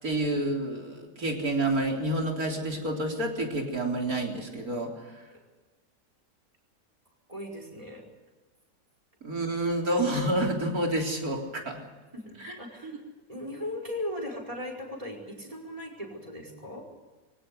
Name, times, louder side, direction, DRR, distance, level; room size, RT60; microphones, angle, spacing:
voice 1, 0.0-5.1 9.2-11.8 12.4-12.5 12.8-12.9, right 1 dB, 65° right, 1 dB, 4.3 m, -29 dB
voice 2, 7.3-8.0 12.1-13.0 13.3-16.8, left 1 dB, 20° right, 2 dB, 5.1 m, -38 dB
24.0 x 17.5 x 8.1 m, 1.3 s
omnidirectional pair, 1.7 m